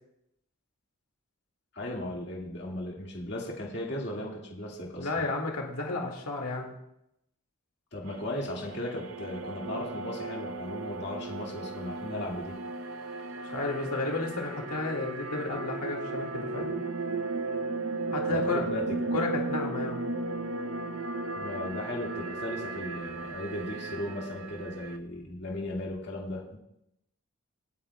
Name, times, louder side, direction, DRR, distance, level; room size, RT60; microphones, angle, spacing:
voice 1, 1.7-5.1 7.9-12.6 18.3-18.8 21.4-26.6, left 1 dB, 50° left, -2 dB, 1.9 m, -36 dB
voice 2, 5.0-6.7 13.4-16.7 18.1-18.6 19.1-20.0, left 3 dB, 90° left, 1 dB, 2.1 m, -32 dB
sound 1, 8.1-25.0, right 3 dB, 65° right, 0.7 m, -35 dB
26.0 x 8.9 x 2.3 m, 0.81 s
head